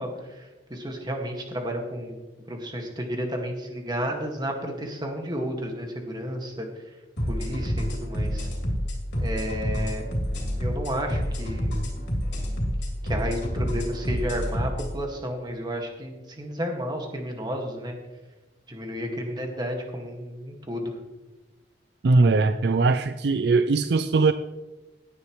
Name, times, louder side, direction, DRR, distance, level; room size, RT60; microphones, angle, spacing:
voice 1, 0.0-7.0 7.3-8.5 9.2-10.1 10.6-11.7 13.0-18.0 18.7-21.0, equal, 25° right, 2 dB, 2.0 m, -32 dB
sound 1, 7.2-14.9, equal, 85° left, 3.1 m, -28 dB
voice 2, 22.0-24.3, right 3 dB, 65° right, 11 dB, 0.4 m, -20 dB
17.5 x 9.6 x 3.2 m, 1.1 s
head